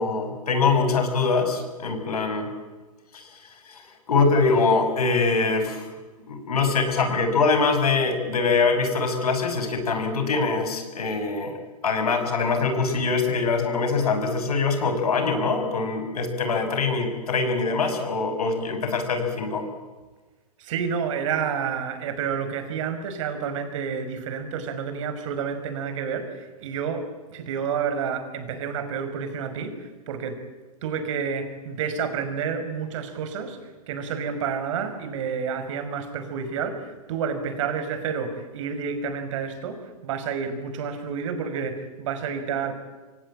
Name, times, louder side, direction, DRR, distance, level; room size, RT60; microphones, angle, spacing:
voice 1, 0.0-2.5 3.1-3.4 3.7-5.9 6.3-11.5 11.8-19.6, left 4 dB, 75° left, 7 dB, 6.6 m, -23 dB
voice 2, 20.6-27.0 27.3-30.4 30.8-33.6 33.9-42.7, right 6 dB, 55° right, 8 dB, 5.4 m, -29 dB
26.5 x 24.5 x 8.9 m, 1.2 s
hypercardioid pair, 125°, 19 cm